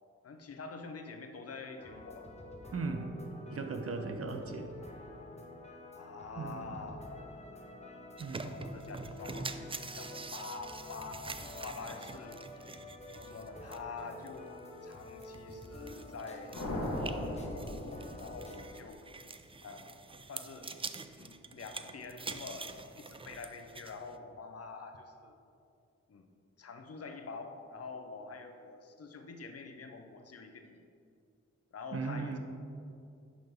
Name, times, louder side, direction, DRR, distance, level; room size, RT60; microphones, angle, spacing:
voice 1, 0.2-2.3 5.9-7.1 8.4-12.8 13.1-14.5 14.8-16.9 17.4-19.0 19.6-19.8 20.3-20.7 21.2-25.3 26.1-26.3 26.6-30.8 31.7-32.4, left 4 dB, 55° left, 6 dB, 0.7 m, -46 dB
sound 1, 1.8-18.7, left 1 dB, 20° left, 0.9 m, -49 dB
voice 2, 2.7-3.1 3.5-4.7 6.4-6.9 8.2-8.6 31.9-32.4, right 4 dB, 50° right, 6 dB, 0.8 m, -38 dB
sound 2, 8.2-24.2, right 3 dB, 20° right, 0.3 m, -46 dB
sound 3, 16.5-18.8, left 1 dB, 85° left, 1.4 m, -37 dB
11.0 x 3.8 x 3.6 m, 2.5 s
cardioid pair, 50°, 29 cm